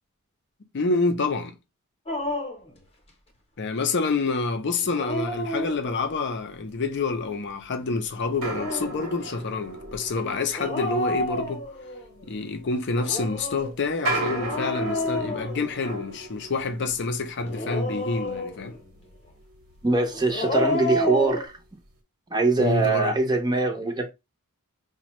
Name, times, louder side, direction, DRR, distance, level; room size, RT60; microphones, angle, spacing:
voice 1, 0.7-1.6 3.6-11.7 12.3-18.8 22.6-23.2, left 3 dB, 50° left, 0.6 m, -27 dB
Dog, 2.1-2.7 4.8-6.2 8.3-9.0 10.5-12.0 12.9-16.1 17.4-18.8 20.1-21.5, left 2 dB, 30° left, 0.9 m, -30 dB
sound 1, 7.1-7.2 8.4-20.3 20.7-20.8 21.4-21.6, right 2 dB, 65° right, 1.1 m, -36 dB
voice 2, 19.8-21.5 22.3-24.1, right 3 dB, 20° right, 0.7 m, -23 dB
5.1 x 2.2 x 3.0 m
head